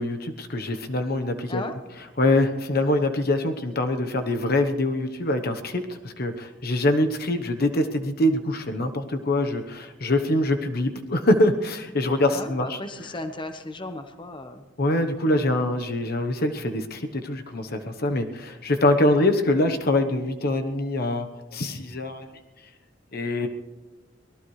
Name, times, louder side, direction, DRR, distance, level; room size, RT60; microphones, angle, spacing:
voice 1, 0.0-1.6 2.2-12.7 14.8-22.3 23.1-23.5, left 1 dB, 55° left, 6 dB, 1.1 m, -24 dB
voice 2, 12.3-14.7 19.0-19.3, left 2 dB, 25° left, 7 dB, 1.1 m, -35 dB
24.0 x 18.0 x 3.2 m, 1.2 s
head